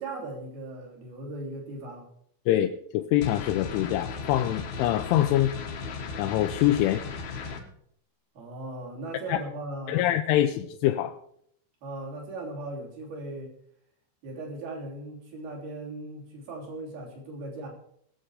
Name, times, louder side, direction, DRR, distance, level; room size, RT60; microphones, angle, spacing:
voice 1, 0.0-2.1 8.3-10.1 11.8-13.5 14.2-17.7, right 2 dB, 55° right, 4.9 m, -38 dB
voice 2, 2.5-5.6 6.2-7.1 9.3-9.4 9.9-11.1, left 13 dB, 85° left, 3.1 m, -24 dB
sound 1, 3.2-7.6, left 5 dB, 60° left, 2.1 m, -36 dB
20.5 x 7.7 x 4.9 m
omnidirectional pair, 5.6 m